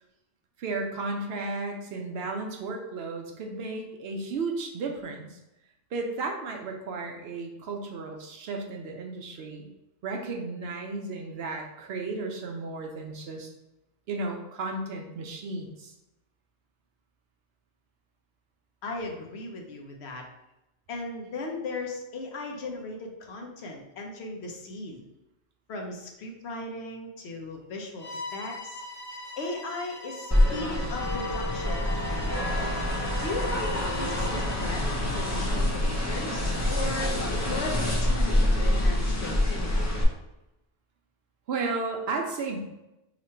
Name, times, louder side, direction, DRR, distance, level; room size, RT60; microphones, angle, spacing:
voice 1, 0.6-5.4 5.9-9.7 10.0-13.5 14.1-15.9 41.5-42.6, right 3 dB, 65° right, 2 dB, 0.7 m, -34 dB
voice 2, 18.8-20.2 20.9-25.1 25.7-28.8 29.4-32.5 33.2-37.2 37.5-39.9, left 2 dB, 65° left, 1 dB, 0.9 m, -37 dB
Bowed string instrument, 28.0-34.9, left 1 dB, 85° left, 1.2 m, -41 dB
sound 1, 30.3-40.0, left 1 dB, 25° left, 0.3 m, -26 dB
3.0 x 2.5 x 4.2 m, 0.94 s
omnidirectional pair, 1.2 m